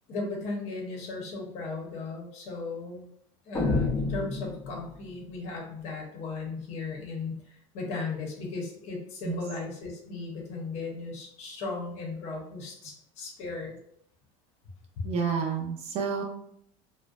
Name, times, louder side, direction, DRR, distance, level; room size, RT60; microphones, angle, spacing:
voice 1, 0.1-3.1 3.5-13.8 15.0-15.1, left 3 dB, 45° left, -1 dB, 0.7 m, -36 dB
sound 1, 3.5-5.2, left 3 dB, 15° left, 0.4 m, -29 dB
voice 2, 15.0-16.2, right 6 dB, 40° right, 1 dB, 0.5 m, -29 dB
2.5 x 2.2 x 2.3 m, 0.69 s
cardioid pair, 155°, 16 cm